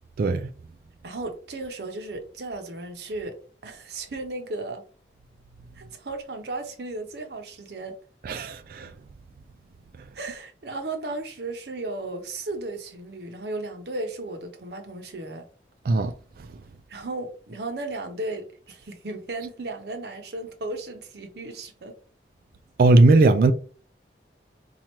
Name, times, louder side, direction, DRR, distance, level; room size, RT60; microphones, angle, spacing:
voice 1, 0.2-0.5 8.3-8.9 15.9-16.1 22.8-23.5, right 2 dB, 55° right, 0.3 m, -18 dB
voice 2, 1.0-3.3 3.6-4.8 5.7-7.9 10.1-15.5 16.9-21.9, right 2 dB, 70° right, 0.7 m, -35 dB
4.4 x 2.4 x 2.9 m
head